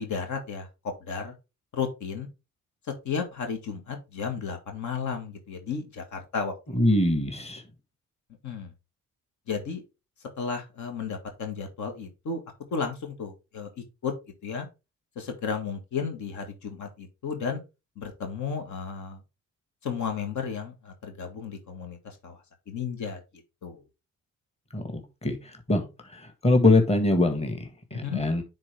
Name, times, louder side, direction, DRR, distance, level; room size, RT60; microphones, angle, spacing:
voice 1, 0.0-1.4 1.7-2.3 3.0-6.8 8.4-8.7 9.5-9.8 10.4-12.4 12.7-13.7 14.0-14.1 14.4-14.7 15.2-17.6 18.0-19.2 19.8-23.2 23.6-23.8 27.9-28.2, left 6 dB, 70° left, 1.8 m, -33 dB
voice 2, 6.8-7.6 24.7-25.4 25.7-25.9 26.1-28.4, left 2 dB, 20° left, 1.7 m, -23 dB
9.7 x 3.8 x 3.4 m
cardioid pair, 90°, 30 cm